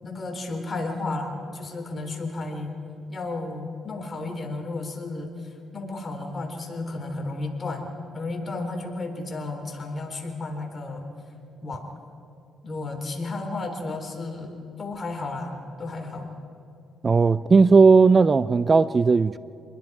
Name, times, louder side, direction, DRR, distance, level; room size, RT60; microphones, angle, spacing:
voice 1, 0.0-2.7 3.1-5.3 5.7-7.9 8.1-11.1 11.6-11.9 12.6-16.3, left 2 dB, 35° left, 3.6 m, -33 dB
voice 2, 17.0-19.4, right 4 dB, 35° right, 0.4 m, -16 dB
26.5 x 21.0 x 4.8 m
cardioid pair, 90°, 0 cm